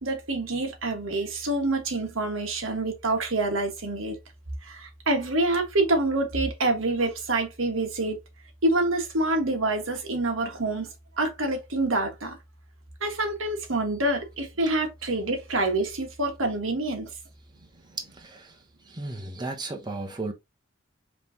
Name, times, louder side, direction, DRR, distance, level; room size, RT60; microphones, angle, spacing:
voice 1, 0.0-4.2 4.6-8.2 8.6-10.9 11.2-12.4 13.0-17.1, right 2 dB, 85° right, 1.4 m, -26 dB
voice 2, 17.9-18.6 18.9-20.3, right 2 dB, 20° right, 0.8 m, -35 dB
5.3 x 3.1 x 2.7 m
head